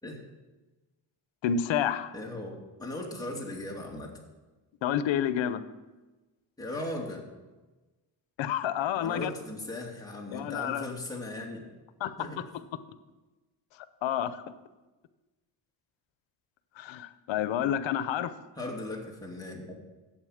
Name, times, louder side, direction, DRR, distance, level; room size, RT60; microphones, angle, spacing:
voice 1, 1.4-2.1 4.8-5.6 8.4-9.3 10.3-10.9 12.0-12.3 14.0-14.4 16.8-18.3, left 9 dB, 90° left, 13 dB, 0.8 m, -29 dB
voice 2, 2.1-4.1 6.6-7.3 9.0-11.6 12.2-12.4 18.6-19.7, left 1 dB, 10° left, -2 dB, 2.6 m, -38 dB
11.0 x 8.1 x 6.5 m, 1.2 s
cardioid pair, 120°, 44 cm